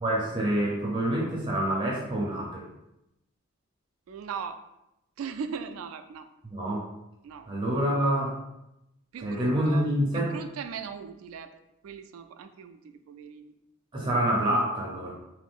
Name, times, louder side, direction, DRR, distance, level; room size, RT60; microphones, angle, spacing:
voice 1, 0.0-2.6 6.4-6.8 7.5-8.4 9.2-10.3 13.9-15.1, right 1 dB, 25° right, -3 dB, 0.6 m, -27 dB
voice 2, 4.1-4.6 5.2-6.3 7.2-7.5 9.1-9.9 10.1-11.5 11.8-13.5, right 6 dB, 80° right, 10 dB, 0.3 m, -39 dB
3.1 x 2.6 x 3.5 m, 0.87 s
head